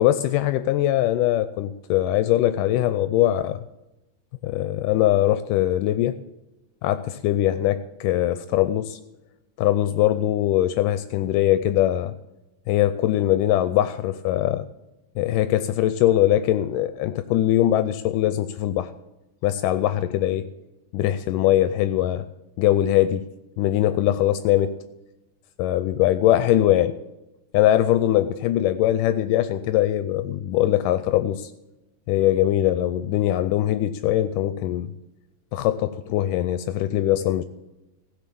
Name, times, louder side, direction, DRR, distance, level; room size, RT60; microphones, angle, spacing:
voice 1, 0.0-3.6 4.4-6.2 6.8-9.0 9.6-12.1 12.7-14.6 15.2-18.9 19.4-20.5 20.9-22.3 22.6-23.2 23.6-24.8 25.6-27.0 27.5-31.5 32.1-34.9 35.5-37.4, left 13 dB, 80° left, 12 dB, 2.1 m, -21 dB
16.0 x 6.8 x 8.4 m, 1.0 s
omnidirectional pair, 3.8 m